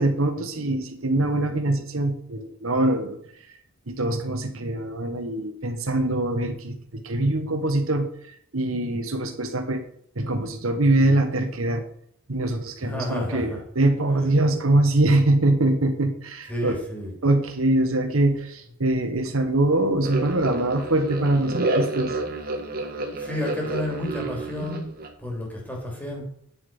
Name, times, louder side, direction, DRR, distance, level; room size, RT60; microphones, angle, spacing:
voice 1, 0.0-3.2 3.9-9.8 10.1-11.8 12.3-16.8 17.2-22.2, right 2 dB, 75° right, 6 dB, 1.4 m, -23 dB
voice 2, 12.8-13.6 16.5-17.1 23.2-24.9 25.2-26.2, left 1 dB, 10° left, -1 dB, 3.2 m, -31 dB
sound 1, 20.0-25.1, right 2 dB, 45° right, 1.7 m, -29 dB
9.2 x 6.9 x 5.4 m, 0.64 s
head